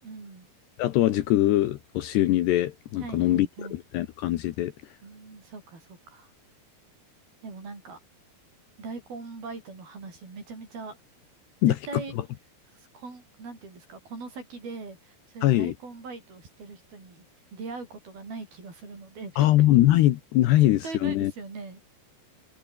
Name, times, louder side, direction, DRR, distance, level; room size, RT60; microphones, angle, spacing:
voice 1, 0.0-0.5 3.0-3.8 5.0-6.3 7.4-8.0 8.8-11.0 11.6-12.2 12.7-17.2 17.5-19.5 20.6-21.8, right 4 dB, 50° right, 9.4 m, -41 dB
voice 2, 0.8-3.5 3.9-4.7 11.6-11.8 15.4-15.7 19.4-21.3, left 15 dB, 70° left, 2.9 m, -22 dB
omnidirectional pair, 5.5 m